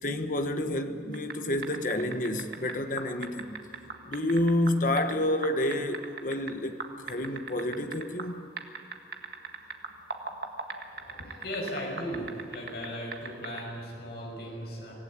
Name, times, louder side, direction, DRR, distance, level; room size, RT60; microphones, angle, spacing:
voice 1, 0.0-3.6 4.1-6.8 7.0-8.4, left 1 dB, 45° left, 1.4 m, -29 dB
sound 1, 1.1-1.3 1.6-5.1 5.4-6.5 6.8-8.3 8.6-12.9 13.1-13.6, right 4 dB, 55° right, 1.8 m, -37 dB
voice 2, 10.9-14.9, equal, 60° left, 5.9 m, -37 dB
25.5 x 16.5 x 8.8 m
head